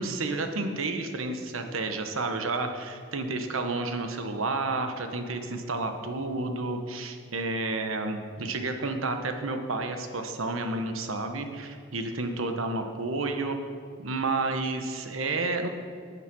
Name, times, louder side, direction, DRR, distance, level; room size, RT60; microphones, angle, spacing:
voice 1, 0.0-13.6 14.0-15.7, right 3 dB, 85° right, 6 dB, 1.2 m, -31 dB
9.7 x 9.2 x 6.1 m, 2.1 s
head